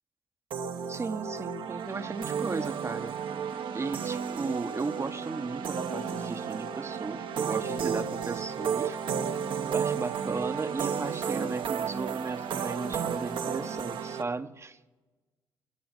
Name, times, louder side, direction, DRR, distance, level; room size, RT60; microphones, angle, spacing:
sound 1, 0.5-14.2, right 7 dB, 65° right, 1.0 m, -33 dB
voice 1, 0.9-3.1 3.7-9.0 9.7-14.8, right 3 dB, 30° right, 10 dB, 0.8 m, -35 dB
19.5 x 6.9 x 7.9 m, 1.2 s
supercardioid pair, 55°, 9 cm